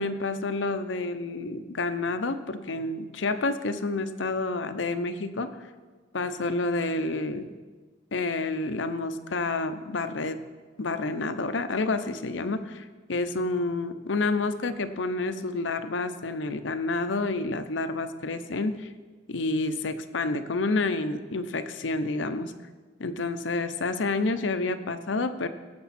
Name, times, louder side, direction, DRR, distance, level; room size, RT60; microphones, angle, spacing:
voice 1, 0.0-5.5 6.1-7.5 8.1-10.4 10.8-18.9 19.3-22.5 23.0-25.5, left 3 dB, 85° left, 10 dB, 0.7 m, -29 dB
17.5 x 6.9 x 4.2 m, 1.4 s
head